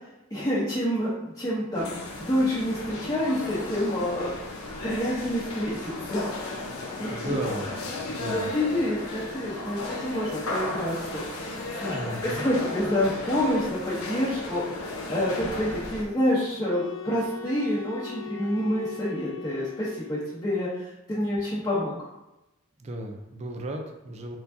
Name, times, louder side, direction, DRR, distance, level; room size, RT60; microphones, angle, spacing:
voice 1, 0.3-1.9 2.2-4.3 4.8-6.2 7.0-7.3 8.3-11.9 12.2-21.9, left 1 dB, 20° left, -10 dB, 0.9 m, -28 dB
sound 1, 1.7-16.0, left 2 dB, 85° left, 0.9 m, -35 dB
voice 2, 7.1-7.7 8.1-8.5 11.9-12.5 22.8-24.4, right 1 dB, 30° right, 3 dB, 0.5 m, -34 dB
sound 2, 16.6-20.5, left 6 dB, 60° left, 0.5 m, -41 dB
4.6 x 3.9 x 2.7 m, 0.94 s
head